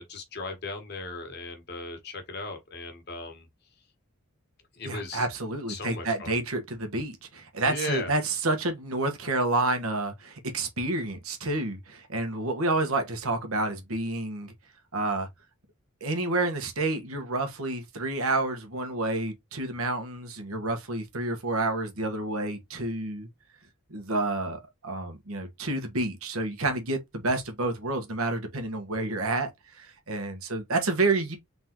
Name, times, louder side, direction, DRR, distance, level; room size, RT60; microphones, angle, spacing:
voice 1, 0.0-3.5 4.7-5.3 5.7-6.4 7.6-8.1, left 2 dB, 50° left, 1.5 m, -37 dB
voice 2, 4.8-14.5 14.9-15.3 16.0-23.3 23.9-31.4, right 2 dB, 85° right, 1.4 m, -29 dB
3.9 x 3.7 x 3.0 m
head